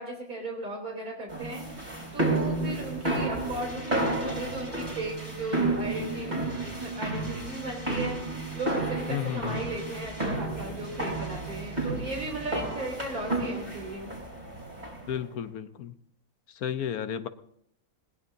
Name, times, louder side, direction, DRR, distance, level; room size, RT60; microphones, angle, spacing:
voice 1, 0.0-6.3 6.8-8.2 8.5-14.1, right 2 dB, 80° right, -2 dB, 3.6 m, -36 dB
sound 1, 1.3-15.2, right 2 dB, 30° right, 3.7 m, -31 dB
voice 2, 9.1-9.7 15.1-15.9 16.6-17.3, left 9 dB, 85° left, 11 dB, 1.3 m, -32 dB
20.5 x 19.5 x 2.7 m, 0.72 s
omnidirectional pair, 1.5 m